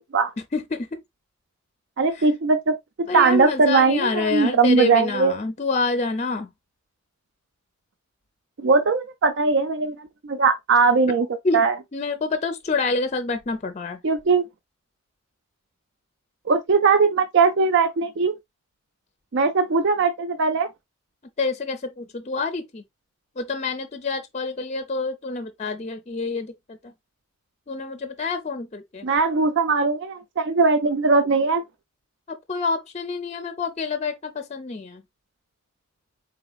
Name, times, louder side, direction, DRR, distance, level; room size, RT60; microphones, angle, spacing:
voice 1, 0.5-0.9 2.2-2.3 3.1-6.5 11.4-11.6 11.9-14.0 21.4-22.8 23.4-26.8 27.7-29.1 32.5-35.0, left 4 dB, 35° left, 0.5 m, -27 dB
voice 2, 2.0-2.7 3.1-5.3 8.6-11.3 11.5-11.7 14.0-14.5 16.5-18.3 19.3-20.7 29.0-31.6, right 4 dB, 60° right, 0.5 m, -20 dB
4.0 x 4.0 x 2.3 m
head